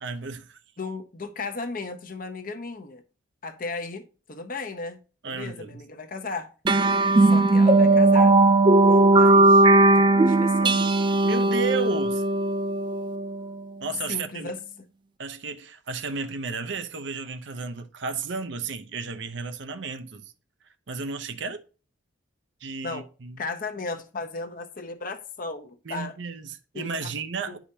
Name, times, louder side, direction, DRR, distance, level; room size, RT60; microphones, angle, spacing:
voice 1, 0.0-0.6 5.2-5.8 11.2-12.2 13.8-14.5 15.2-20.3 20.9-21.6 22.6-23.4 25.9-27.6, right 4 dB, 65° right, 0.6 m, -33 dB
voice 2, 0.8-3.0 3.4-5.0 5.2-6.5 7.2-8.4 8.8-9.7 9.9-11.1 14.1-14.6 22.8-23.1 23.4-26.2 26.7-27.1 27.5-27.6, left 3 dB, 45° left, 0.8 m, -35 dB
sound 1, 6.6-13.5, right 2 dB, 25° right, 0.3 m, -18 dB
9.9 x 4.9 x 2.7 m
head